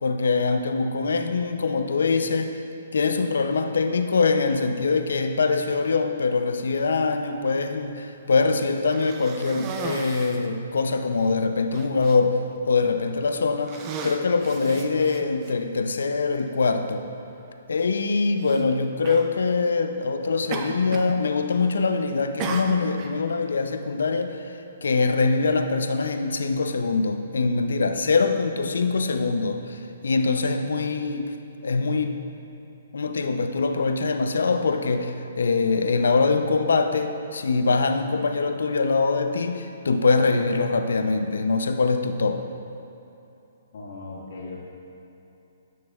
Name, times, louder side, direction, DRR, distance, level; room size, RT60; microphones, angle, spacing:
voice 1, 0.0-2.6 2.9-12.4 12.7-17.0 17.7-31.4 31.6-32.2 32.9-42.4, left 4 dB, 85° left, 7 dB, 0.5 m, -23 dB
Cough, 8.9-10.5 11.2-11.3 11.7-12.2 12.9-13.2 13.6-15.5 16.5-16.6 18.4-18.6 19.0-19.3 20.5-21.2 21.5-21.9 22.4-23.1, right 5 dB, 25° right, 0.5 m, -35 dB
voice 2, 43.7-44.7, left 3 dB, 65° left, -3 dB, 1.6 m, -38 dB
11.5 x 6.2 x 2.4 m, 2.9 s
hypercardioid pair, 160°, 0 cm